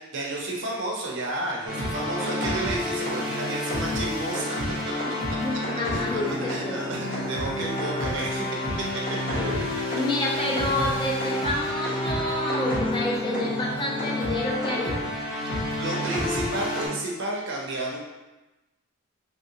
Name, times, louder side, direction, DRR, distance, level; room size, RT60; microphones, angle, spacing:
voice 1, 0.0-4.5 4.8-4.9 5.3-5.6 5.9-8.6 15.5-18.0, right 2 dB, 55° right, -2 dB, 0.6 m, -32 dB
sound 1, 1.7-16.9, left 1 dB, 40° left, 0.9 m, -29 dB
voice 2, 5.2-6.8 9.4-9.7 9.9-15.0, left 1 dB, 20° left, -2 dB, 0.3 m, -29 dB
3.1 x 2.7 x 2.7 m, 1.1 s
head